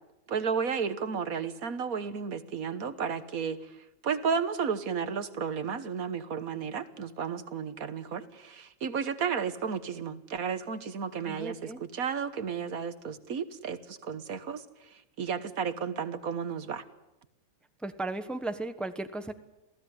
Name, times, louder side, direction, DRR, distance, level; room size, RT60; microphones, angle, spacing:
voice 1, 0.3-3.6 4.0-14.6 15.2-16.8, right 6 dB, 75° right, 12 dB, 1.7 m, -33 dB
voice 2, 11.3-11.8 17.8-19.4, right 2 dB, ahead, 9 dB, 1.1 m, -35 dB
27.5 x 17.0 x 9.5 m, 0.95 s
omnidirectional pair, 1.5 m